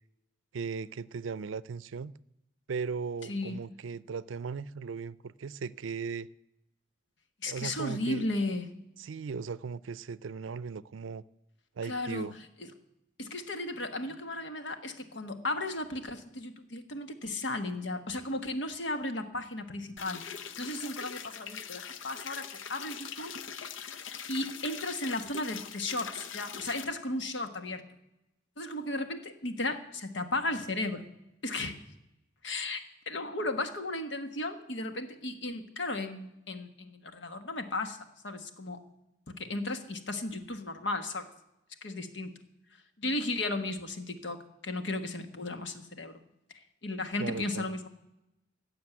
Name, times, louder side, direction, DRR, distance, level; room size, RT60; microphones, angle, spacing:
voice 1, 0.5-2.1 2.7-6.3 7.5-8.3 9.0-11.2 11.8-12.4 47.2-47.7, right 5 dB, 90° right, 0.5 m, -37 dB
voice 2, 7.4-8.7 11.8-12.3 12.6-12.7 13.2-20.2 20.6-23.3 24.3-27.8 28.6-31.0 31.4-31.7 32.4-38.0 38.2-38.8 39.3-41.3 41.8-42.3 43.0-46.2 46.8-47.9, left 2 dB, 65° left, 1.4 m, -35 dB
sound 1, 20.0-26.8, left 7 dB, 90° left, 0.8 m, -42 dB
15.5 x 6.7 x 9.1 m
head